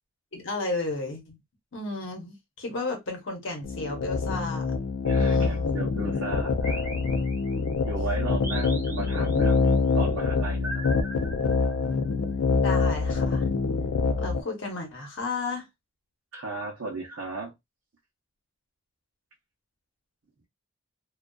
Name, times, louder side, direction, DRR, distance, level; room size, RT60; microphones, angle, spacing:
voice 1, 0.3-1.4 1.7-4.7 5.1-5.7 12.6-13.5 14.2-15.6, left 3 dB, 55° left, 0.8 m, -33 dB
sound 1, 3.6-14.4, left 4 dB, 85° left, 0.4 m, -25 dB
voice 2, 5.0-6.8 7.8-10.9 16.3-17.5, right 3 dB, 65° right, 0.6 m, -35 dB
sound 2, 6.6-7.8 8.4-9.6 10.6-12.1, right 1 dB, 10° right, 0.7 m, -40 dB
2.4 x 2.3 x 2.2 m
head